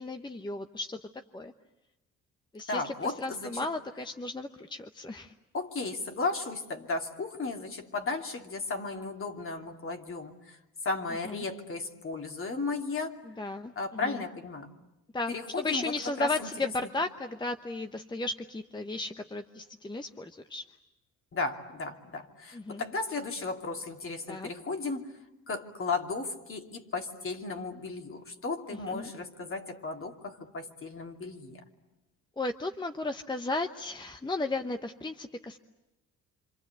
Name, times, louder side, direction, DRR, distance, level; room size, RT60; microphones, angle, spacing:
voice 1, 0.0-1.5 2.5-5.3 11.2-11.4 13.2-14.2 15.1-20.7 22.5-22.8 24.3-24.5 28.7-29.1 32.4-35.6, left 2 dB, 15° left, 7 dB, 1.0 m, -35 dB
voice 2, 2.7-3.6 5.5-10.6 10.8-13.2 13.8-14.7 15.3-16.9 21.3-25.1 25.5-31.6, left 3 dB, 45° left, 4 dB, 2.7 m, -35 dB
27.0 x 26.5 x 8.3 m, 0.95 s
cardioid pair, 90°, 30 cm